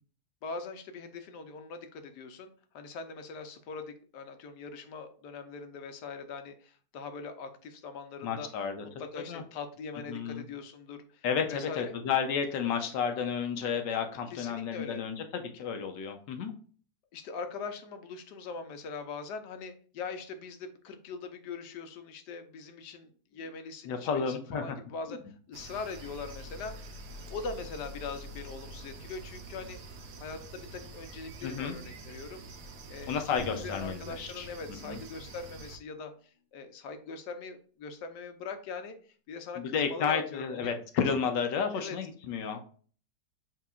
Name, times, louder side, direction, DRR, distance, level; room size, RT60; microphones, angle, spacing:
voice 1, 0.4-8.5 9.0-11.9 14.3-15.0 17.1-26.7 27.3-32.4 32.9-40.8 41.7-42.0, left 4 dB, 75° left, 7 dB, 1.3 m, -42 dB
voice 2, 8.2-8.8 9.3-9.4 10.1-10.4 11.2-16.5 23.8-24.8 31.4-31.7 33.1-34.5 34.8-35.0 39.6-42.6, left 6 dB, 90° left, 6 dB, 1.4 m, -31 dB
sound 1, 25.5-35.8, right 1 dB, 65° right, 1.2 m, -46 dB
sound 2, 33.4-35.5, right 1 dB, 30° right, 0.8 m, -46 dB
7.7 x 2.9 x 2.4 m, 0.43 s
omnidirectional pair, 1.9 m